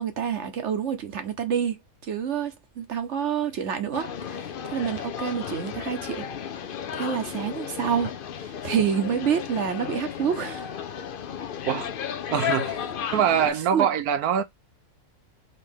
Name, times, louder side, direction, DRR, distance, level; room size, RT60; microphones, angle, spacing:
voice 1, 0.0-1.8 2.0-6.2 6.9-10.7 13.7-13.9, right 8 dB, 55° right, 1.0 m, -28 dB
sound 1, 3.9-13.5, left 8 dB, 60° left, 0.6 m, -33 dB
voice 2, 12.3-12.8 13.1-14.4, right 8 dB, 85° right, 1.2 m, -23 dB
4.2 x 2.9 x 3.5 m
omnidirectional pair, 1.5 m